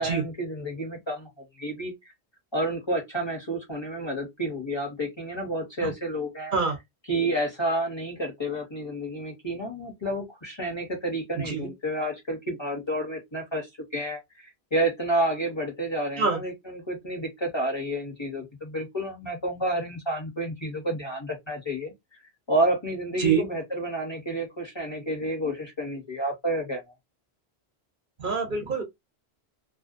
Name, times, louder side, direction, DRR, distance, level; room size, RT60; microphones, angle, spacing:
voice 1, 0.0-2.1 2.5-6.5 7.1-13.7 13.9-21.9 22.5-26.8, right 1 dB, 30° left, 0.7 m, -30 dB
voice 2, 11.4-11.7 16.2-16.4 23.2-23.4 28.2-28.8, right 5 dB, 55° right, 0.8 m, -25 dB
2.5 x 2.1 x 2.4 m
omnidirectional pair, 1.1 m